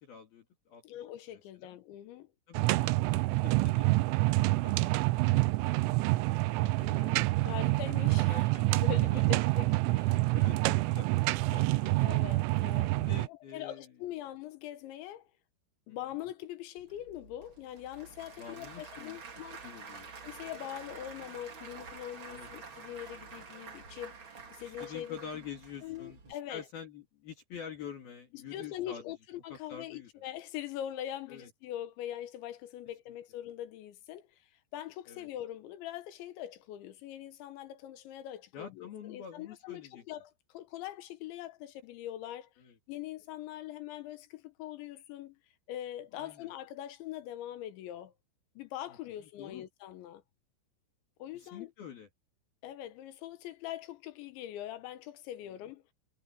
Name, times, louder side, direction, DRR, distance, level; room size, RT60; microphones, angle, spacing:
voice 1, 0.0-0.8 1.3-1.8 2.5-6.0 6.5-7.7 8.1-8.8 9.1-9.2 10.3-11.1 11.4-12.0 12.2-12.3 13.0-13.9 15.9-16.0 18.4-19.2 19.6-20.1 22.3-22.5 24.6-29.0 29.5-30.1 31.3-31.5 35.1-35.3 38.5-40.0 42.6-42.8 46.1-46.5 49.2-49.6 51.3-52.1, left 7 dB, 55° left, 3.7 m, -47 dB
voice 2, 0.8-2.3 6.8-10.3 12.0-12.9 13.3-15.2 15.9-19.6 20.2-25.2 25.8-26.7 28.3-34.4 34.7-42.5 42.9-45.4 45.7-48.1 48.6-50.2 51.2-51.7 52.6-55.9, left 12 dB, 75° left, 3.2 m, -42 dB
sound 1, 2.5-13.3, right 21 dB, 85° right, 3.1 m, -27 dB
Applause / Crowd, 16.8-26.3, right 5 dB, 45° right, 1.7 m, -49 dB
omnidirectional pair, 5.8 m